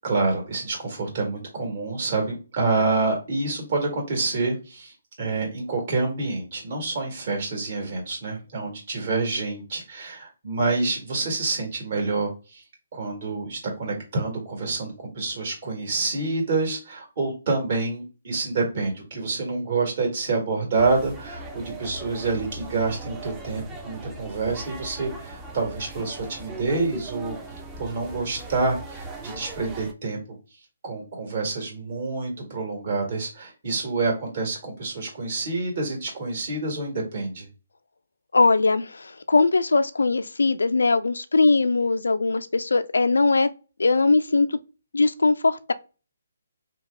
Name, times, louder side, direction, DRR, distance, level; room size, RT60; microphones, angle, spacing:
voice 1, 0.0-12.6 12.9-27.4 27.8-30.2 30.8-37.5, right 3 dB, 50° right, 1.7 m, -27 dB
sound 1, 20.8-29.9, right 2 dB, 10° right, 0.5 m, -39 dB
voice 2, 38.3-43.5 43.8-44.6 44.9-45.7, left 3 dB, 80° left, 0.4 m, -20 dB
2.9 x 2.3 x 3.3 m
figure-of-eight pair, 145°, 0 cm